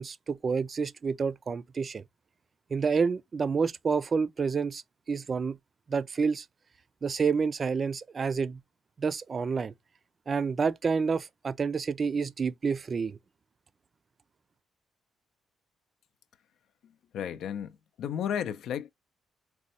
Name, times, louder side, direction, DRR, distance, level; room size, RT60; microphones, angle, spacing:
voice 1, 0.0-2.0 2.7-4.8 5.1-5.6 5.9-6.5 7.0-8.6 9.0-9.7 10.3-13.2, right 5 dB, 40° right, 0.3 m, -29 dB
voice 2, 17.1-18.9, left 9 dB, 75° left, 0.4 m, -33 dB
4.0 x 2.2 x 2.7 m
cardioid pair, 90°, 0 cm